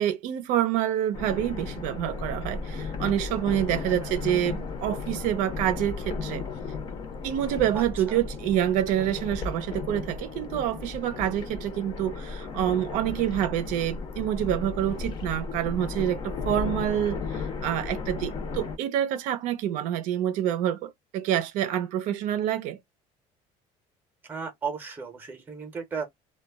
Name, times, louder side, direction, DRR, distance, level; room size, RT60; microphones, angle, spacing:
voice 1, 0.0-6.5 7.2-22.8, right 11 dB, 70° right, 0.5 m, -27 dB
sound 1, 1.1-18.8, left 4 dB, 35° left, 0.6 m, -35 dB
voice 2, 3.8-4.2 7.7-7.8 8.1-8.2 24.3-26.1, right 5 dB, 15° right, 0.7 m, -35 dB
2.2 x 2.0 x 3.3 m
cardioid pair, 160°, 14 cm